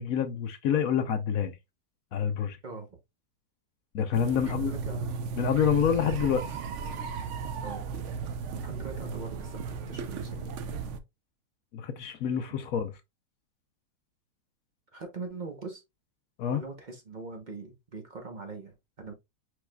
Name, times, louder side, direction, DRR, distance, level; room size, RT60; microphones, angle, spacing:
voice 1, 0.0-1.5 2.1-2.6 3.9-4.7 5.4-6.4 11.7-12.9 16.4-16.6, left 8 dB, 65° left, 0.9 m, -27 dB
voice 2, 2.6-3.0 4.3-5.1 7.6-7.9 8.5-10.5 14.9-15.8 16.5-19.1, right 3 dB, 35° right, 0.8 m, -42 dB
sound 1, 4.1-11.0, right 5 dB, 80° right, 0.6 m, -35 dB
4.7 x 4.6 x 2.3 m
omnidirectional pair, 1.9 m